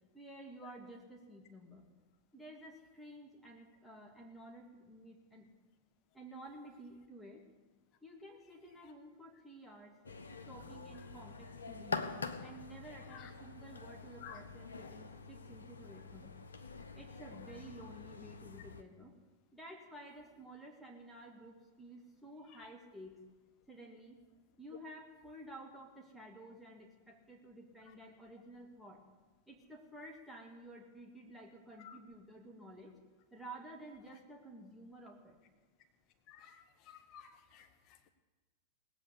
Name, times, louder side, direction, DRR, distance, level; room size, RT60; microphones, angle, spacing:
voice 1, 0.1-1.9 2.3-5.5 6.1-7.4 8.0-10.0 10.5-12.1 12.4-16.4 16.9-19.1 19.5-23.2 23.7-24.2 24.6-29.0 29.5-33.0 33.3-35.4, right 1 dB, ahead, -1 dB, 2.4 m, -52 dB
sound 1, 10.0-18.8, left 4 dB, 75° left, 0.9 m, -45 dB
voice 2, 36.3-37.7, left 9 dB, 40° left, 7 dB, 1.2 m, -53 dB
18.5 x 8.3 x 8.4 m, 1.2 s
figure-of-eight pair, 90°, 0 cm